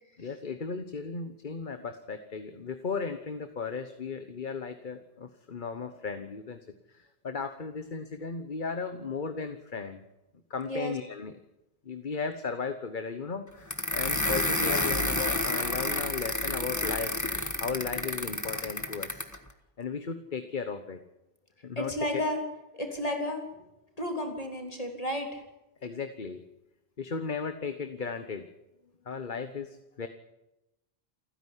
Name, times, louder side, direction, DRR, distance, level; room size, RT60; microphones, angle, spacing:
voice 1, 0.2-6.6 6.9-10.0 10.5-11.3 11.8-17.1 17.6-19.3 19.8-21.0 21.6-22.2 25.8-26.4 27.0-28.5 29.1-30.1, left 5 dB, 50° left, 9 dB, 1.3 m, -35 dB
voice 2, 10.6-11.0 21.8-22.4 22.7-23.6 24.0-25.4, left 1 dB, 35° left, 3 dB, 3.7 m, -32 dB
sound 1, 13.7-19.4, left 1 dB, 15° left, 1.7 m, -30 dB
28.5 x 10.5 x 9.9 m, 0.94 s
omnidirectional pair, 1.0 m